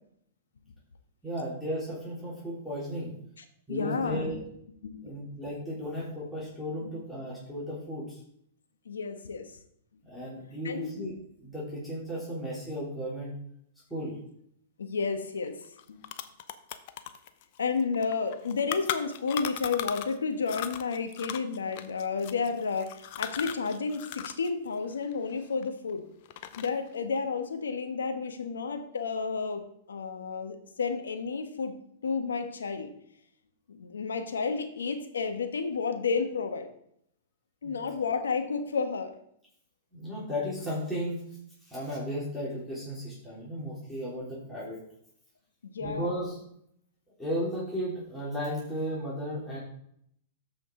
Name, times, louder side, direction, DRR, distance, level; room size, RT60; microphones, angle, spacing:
voice 1, 1.2-3.1 3.7-4.4 5.0-8.2 10.0-11.1 11.4-13.3 13.9-14.2 37.6-37.8 39.9-41.4 41.6-44.8 45.8-46.4 47.2-49.6, equal, 5° left, -8 dB, 3.1 m, -35 dB
voice 2, 3.7-4.4 4.8-5.2 5.5-5.6 6.8-7.0 8.8-9.5 10.6-11.0 14.8-15.6 15.9-16.1 17.6-26.0 26.6-29.6 29.9-31.7 32.0-32.9 33.7-36.7 37.6-39.2 45.6-46.1, left 5 dB, 90° left, 7 dB, 1.2 m, -31 dB
sound 1, 15.4-15.5 15.8-20.2 20.5-24.5 24.7-25.9 26.3-26.9, left 11 dB, 55° left, 0.7 m, -37 dB
13.5 x 5.2 x 3.8 m, 0.70 s
hypercardioid pair, 125°, 0 cm